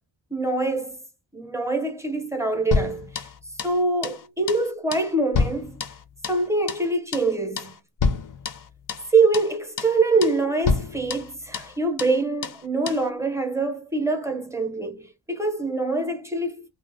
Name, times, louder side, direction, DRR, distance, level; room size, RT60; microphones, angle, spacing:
voice 1, 0.3-1.0 1.3-3.3 3.6-5.8 6.3-7.7 9.1-16.7, right 3 dB, 5° right, 0.6 m, -24 dB
sound 1, 2.7-3.8 4.0-4.2 4.5-4.7 4.9-6.4 6.7-6.9 7.1-7.3 7.6-7.7 8.0-9.1 9.3-9.5 9.8-10.0 10.2-10.4 10.6-11.7 12.0-12.2 12.4-12.6 12.9-13.0, left 4 dB, 45° left, 0.5 m, -28 dB
2.8 x 2.1 x 2.5 m
wide cardioid pair, 100°, 45 cm